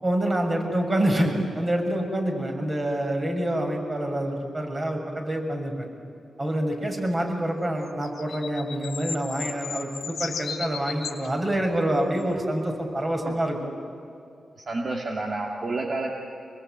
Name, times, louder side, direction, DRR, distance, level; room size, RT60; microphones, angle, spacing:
voice 1, 0.0-5.9 6.4-13.7, right 1 dB, 30° right, 2 dB, 6.5 m, -26 dB
sound 1, 7.9-11.3 12.2-12.3, left 6 dB, 75° left, 2.0 m, -35 dB
voice 2, 14.5-16.2, right 2 dB, 50° right, 0 dB, 2.6 m, -30 dB
26.0 x 21.0 x 9.2 m, 2.5 s
cardioid pair, 55°, 0 cm